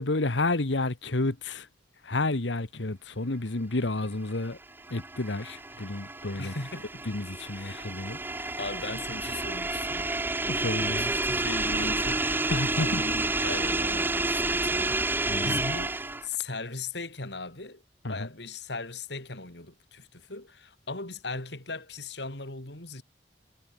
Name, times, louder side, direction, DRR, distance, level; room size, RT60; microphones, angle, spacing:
voice 1, 0.0-1.6 2.1-4.6 4.9-6.5 7.1-8.2 10.5-11.1 12.5-13.0 15.3-15.6 18.0-18.3, left 2 dB, 85° left, 1.5 m, -30 dB
sound 1, 4.4-16.4, right 2 dB, 10° right, 0.6 m, -30 dB
voice 2, 6.4-7.0 7.5-7.9 8.6-12.4 12.6-17.8 18.1-23.0, left 3 dB, 65° left, 3.8 m, -38 dB
head